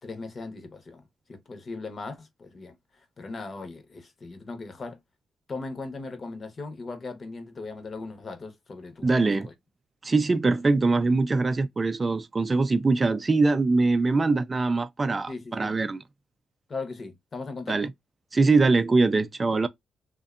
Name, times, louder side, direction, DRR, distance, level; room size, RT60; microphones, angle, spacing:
voice 1, 0.0-5.0 5.5-9.5 15.3-15.8 16.7-17.9, left 3 dB, 40° left, 0.8 m, -38 dB
voice 2, 9.0-9.5 10.0-16.0 17.7-17.9 18.3-19.7, right 3 dB, 30° right, 0.3 m, -23 dB
2.6 x 2.1 x 2.3 m
cardioid pair, 80°, 0 cm